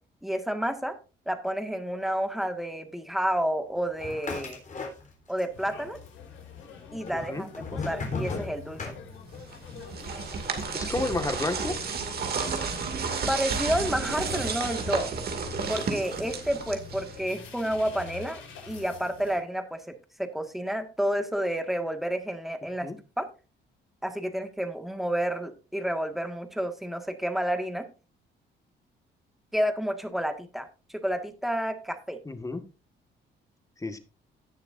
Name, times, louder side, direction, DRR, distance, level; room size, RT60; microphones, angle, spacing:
voice 1, 0.2-0.9 1.2-4.6 5.3-6.0 6.9-8.8 13.3-15.1 15.7-19.8 20.2-22.9 23.2-23.3 24.0-27.8 29.5-32.2, equal, ahead, 6 dB, 1.8 m, -30 dB
sound 1, 4.0-5.4 5.7-6.4 7.1-9.5, left 3 dB, 40° left, 3.8 m, -36 dB
sound 2, 5.5-19.4, left 6 dB, 85° left, 4.6 m, -44 dB
sound 3, 9.5-17.3, right 5 dB, 50° right, 2.5 m, -32 dB
voice 2, 10.7-11.7 22.8-23.0 32.2-32.6 33.8-34.0, left 2 dB, 15° left, 8 dB, 1.7 m, -31 dB
17.5 x 6.6 x 2.6 m, 0.33 s
cardioid pair, 90°, 20 cm